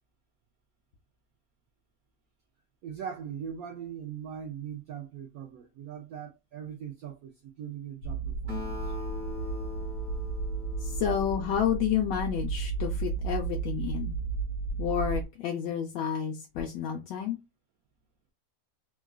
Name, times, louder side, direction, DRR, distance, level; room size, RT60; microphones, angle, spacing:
voice 1, 2.8-9.0, right 8 dB, 70° right, 0.9 m, -40 dB
sound 1, 8.0-15.2, right 4 dB, 60° left, 1.3 m, -33 dB
Acoustic guitar, 8.5-12.1, left 3 dB, 50° right, 1.5 m, -41 dB
voice 2, 10.8-14.2 14.8-17.4, left 9 dB, 75° left, 1.2 m, -30 dB
3.7 x 2.3 x 2.2 m
omnidirectional pair, 2.0 m